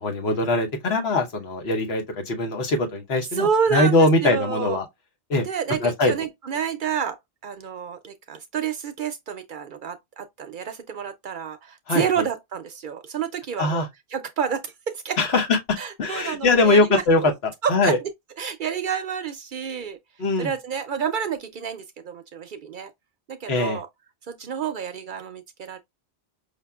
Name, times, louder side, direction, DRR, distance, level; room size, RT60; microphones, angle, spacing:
voice 1, 0.0-4.9 5.3-5.4 5.8-6.1 11.9-12.2 13.6-13.9 15.2-15.6 16.0-17.3 17.7-18.0 20.2-20.5 23.5-23.8, left 2 dB, 75° left, 1.2 m, -21 dB
voice 2, 3.3-4.8 5.4-7.2 7.4-15.4 15.8-17.3 17.6-18.0 18.4-20.0 20.4-22.9 23.3-23.9 24.3-25.8, right 7 dB, 60° right, 0.6 m, -29 dB
5.2 x 2.6 x 2.3 m
omnidirectional pair, 1.1 m